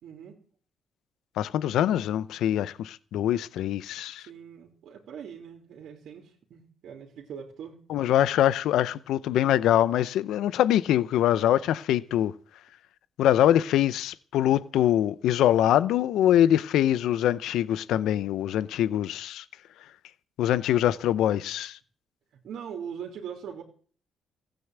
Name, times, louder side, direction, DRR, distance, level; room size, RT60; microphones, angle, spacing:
voice 1, 0.0-0.4 4.1-7.8 22.3-23.6, right 7 dB, 75° right, 3.2 m, -41 dB
voice 2, 1.4-4.3 7.9-12.3 13.2-19.4 20.4-21.8, left 11 dB, 85° left, 0.7 m, -24 dB
15.5 x 9.3 x 8.1 m
cardioid pair, 90°, 0 cm